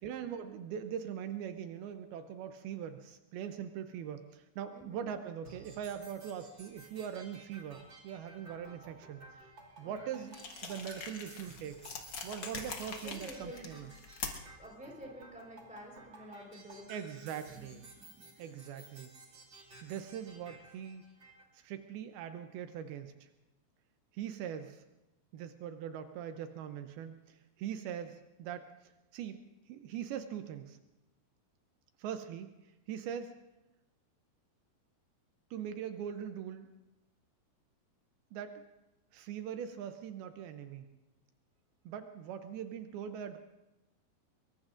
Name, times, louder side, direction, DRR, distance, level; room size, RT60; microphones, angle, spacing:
voice 1, 0.0-9.5 9.8-10.4 10.6-11.8 12.2-13.9 16.9-17.9 18.4-19.1 19.8-21.0 21.5-23.3 24.1-24.8 25.3-29.4 29.7-30.8 32.0-32.5 32.9-33.3 35.5-36.7 38.3-38.6 39.1-40.9 41.9-43.4, right 8 dB, 80° right, 8 dB, 2.6 m, -41 dB
voice 2, 4.7-5.1 9.8-10.3 12.8-13.8 14.6-16.9 17.5-18.5, equal, ahead, -1 dB, 3.7 m, -50 dB
sound 1, 5.4-21.4, right 3 dB, 35° right, 2.6 m, -55 dB
sound 2, 10.3-14.6, left 5 dB, 55° left, 1.3 m, -43 dB
24.5 x 22.5 x 2.5 m, 0.99 s
omnidirectional pair, 4.4 m